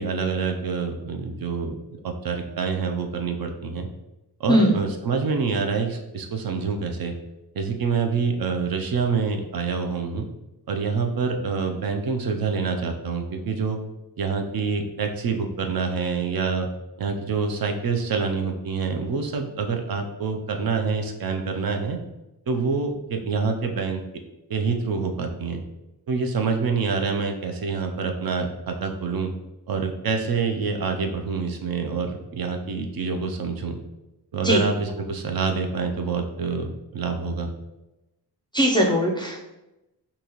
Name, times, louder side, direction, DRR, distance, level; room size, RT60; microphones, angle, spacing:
voice 1, 0.0-1.8 2.0-3.9 4.4-7.1 7.5-10.3 10.7-13.8 14.2-16.7 17.0-22.0 22.5-24.2 24.5-25.6 26.1-29.3 29.7-33.8 34.3-37.5, right 5 dB, 55° right, 4 dB, 0.5 m, -26 dB
voice 2, 38.5-39.4, equal, 10° left, -2 dB, 0.4 m, -19 dB
3.8 x 2.8 x 2.9 m, 0.97 s
wide cardioid pair, 140°, 43 cm